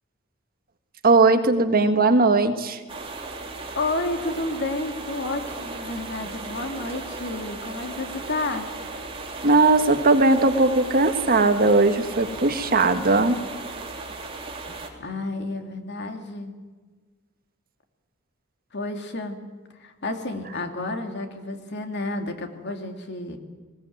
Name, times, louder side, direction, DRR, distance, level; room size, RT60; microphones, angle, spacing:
voice 1, 1.0-2.8 9.4-13.4, right 3 dB, 45° right, 7 dB, 1.6 m, -19 dB
sound 1, 2.9-14.9, right 3 dB, 25° right, 3.2 m, -36 dB
voice 2, 3.7-8.7 15.0-16.5 18.7-19.4 19.8-23.4, left 2 dB, 55° left, 5 dB, 2.5 m, -31 dB
20.5 x 18.0 x 9.3 m, 1.4 s
head